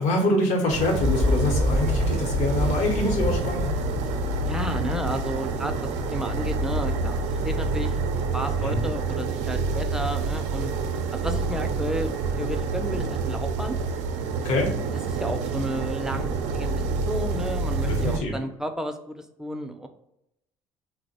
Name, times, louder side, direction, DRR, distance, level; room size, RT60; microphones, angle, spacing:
voice 1, 0.0-3.7 8.6-8.8 14.4-14.7 17.9-18.3, left 2 dB, 75° left, 2 dB, 0.9 m, -25 dB
sound 1, 0.7-18.2, right 4 dB, 80° right, 0.4 m, -28 dB
sound 2, 1.0-7.8, left 3 dB, 40° left, 0.6 m, -29 dB
voice 2, 4.5-7.2 7.4-8.0 8.3-10.7 11.1-13.8 15.1-16.3 16.5-19.9, equal, 5° right, 5 dB, 0.4 m, -32 dB
2.8 x 2.0 x 4.0 m, 0.82 s
supercardioid pair, 85°, 12 cm